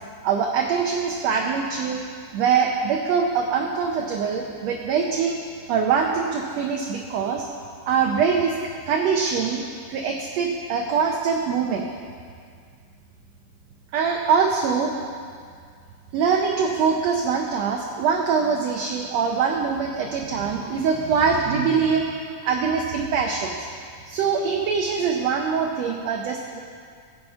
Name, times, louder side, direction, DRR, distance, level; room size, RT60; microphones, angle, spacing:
voice 1, 0.2-2.0 2.3-5.4 5.7-7.5 7.9-8.5 8.9-9.6 9.9-11.9 13.9-14.9 16.1-22.1 22.4-23.5 24.1-26.6, right 6 dB, 70° right, 1 dB, 1.6 m, -23 dB
15.5 x 7.1 x 5.5 m, 2.1 s
omnidirectional pair, 3.7 m